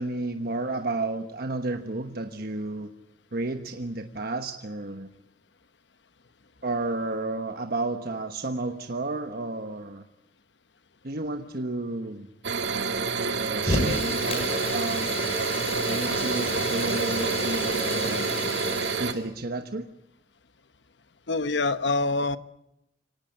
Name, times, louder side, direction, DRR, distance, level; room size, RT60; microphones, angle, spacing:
voice 1, 0.0-2.9 3.3-5.1 6.6-10.0 11.0-12.3 13.4-15.2 15.8-18.5 19.0-19.9, right 2 dB, 60° right, 6 dB, 1.2 m, -32 dB
sound 1, 12.4-19.1, right 5 dB, 90° right, 1.9 m, -28 dB
Fire, 13.6-19.2, left 1 dB, 35° left, 6.0 m, -31 dB
voice 2, 21.3-22.4, left 3 dB, 85° left, 12 dB, 1.1 m, -25 dB
25.0 x 18.5 x 9.1 m, 0.83 s
head